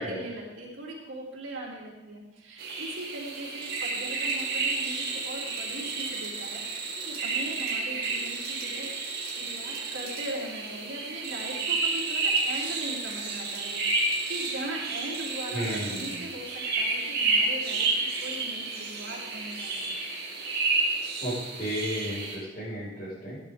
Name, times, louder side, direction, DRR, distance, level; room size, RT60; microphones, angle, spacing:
voice 1, 0.0-8.9 9.2-20.0, right 1 dB, 75° right, -6 dB, 3.7 m, -40 dB
sound 1, 2.6-22.4, right 3 dB, 50° right, 2.3 m, -31 dB
voice 2, 15.5-16.2 21.2-23.4, equal, 40° left, -12 dB, 5.3 m, -33 dB
16.5 x 10.0 x 3.7 m, 1.1 s
head